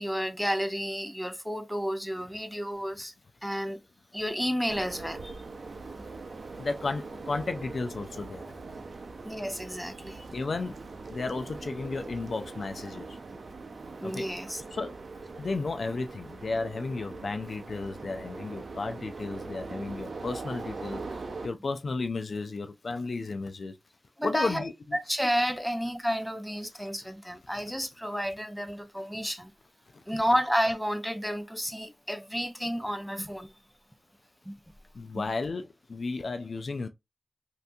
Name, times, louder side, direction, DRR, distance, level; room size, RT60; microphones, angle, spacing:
voice 1, 0.0-3.1 3.4-3.8 4.1-5.3 9.2-10.2 14.0-14.6 24.2-24.6 24.9-29.5 30.1-33.5 34.5-34.6, equal, ahead, 0.6 m, -31 dB
sound 1, 4.7-21.5, right 3 dB, 70° right, 0.6 m, -41 dB
voice 2, 6.6-8.6 10.3-10.7 11.1-13.2 14.0-15.0 15.4-23.8 24.2-25.0 29.9-30.2 34.9-36.9, left 3 dB, 65° left, 0.4 m, -34 dB
3.3 x 2.8 x 2.6 m
wide cardioid pair, 65°, 0 cm